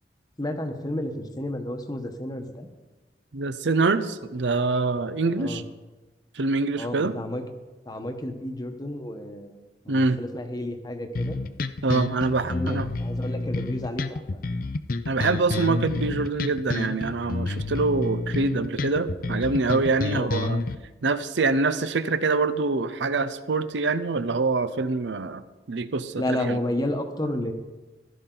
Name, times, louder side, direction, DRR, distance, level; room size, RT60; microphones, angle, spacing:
voice 1, 0.4-2.7 5.4-5.6 6.8-7.4 7.8-9.6 9.8-11.4 12.5-14.4 20.1-20.3 26.2-27.5, left 1 dB, 20° left, 6 dB, 1.0 m, -31 dB
voice 2, 3.3-5.6 6.3-7.2 9.9-10.2 11.8-12.9 15.1-20.6 21.0-26.6, right 3 dB, 85° right, 12 dB, 0.7 m, -25 dB
sound 1, 11.1-20.7, left 3 dB, 50° left, 0.6 m, -29 dB
15.0 x 12.0 x 3.9 m, 1.2 s
head